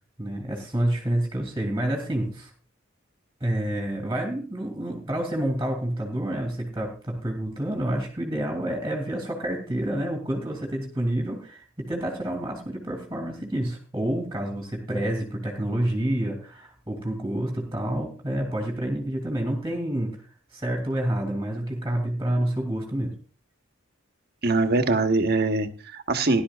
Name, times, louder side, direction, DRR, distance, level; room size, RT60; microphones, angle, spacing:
voice 1, 0.2-2.5 3.4-20.2 20.5-23.2, right 1 dB, 15° right, 3 dB, 2.8 m, -28 dB
voice 2, 24.4-26.4, right 3 dB, 50° right, 8 dB, 1.2 m, -23 dB
18.5 x 12.0 x 2.5 m, 0.35 s
head